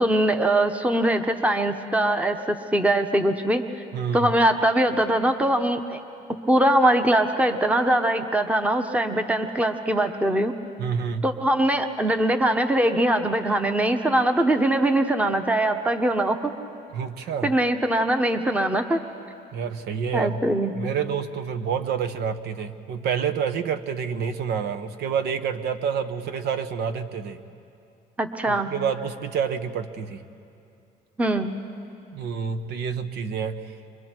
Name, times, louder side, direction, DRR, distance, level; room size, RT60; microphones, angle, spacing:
voice 1, 0.0-3.8 4.1-6.0 6.5-10.5 11.2-16.5 17.4-19.0 20.1-20.7 28.2-28.7 31.2-31.5, right 1 dB, 10° right, 7 dB, 1.0 m, -22 dB
voice 2, 3.9-4.3 10.8-11.3 16.9-17.5 19.5-20.4 20.7-27.4 28.5-30.2 32.1-33.6, right 7 dB, 75° right, 10 dB, 1.1 m, -28 dB
29.5 x 24.0 x 4.5 m, 2.7 s
cardioid pair, 110°, 17 cm